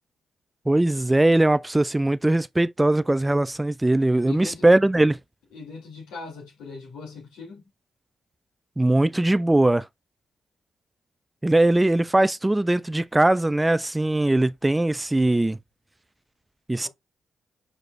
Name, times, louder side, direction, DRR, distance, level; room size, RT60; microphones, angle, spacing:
voice 1, 0.7-5.2 8.8-9.8 11.4-15.6 16.7-16.9, right 1 dB, 15° right, 0.4 m, -20 dB
voice 2, 4.2-4.7 5.5-7.7 16.7-16.9, left 4 dB, 75° left, 2.8 m, -40 dB
6.5 x 3.1 x 2.5 m
hypercardioid pair, 45°, 0 cm